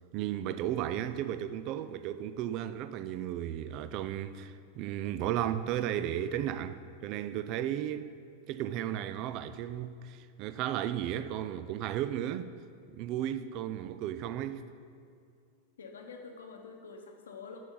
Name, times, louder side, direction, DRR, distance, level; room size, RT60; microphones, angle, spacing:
voice 1, 0.1-8.1 8.5-12.5 13.0-14.6, right 11 dB, 40° right, 0.4 m, -34 dB
voice 2, 15.8-17.6, left 5 dB, 65° left, 1.0 m, -47 dB
11.0 x 7.0 x 3.9 m
figure-of-eight pair, 90°, 0 cm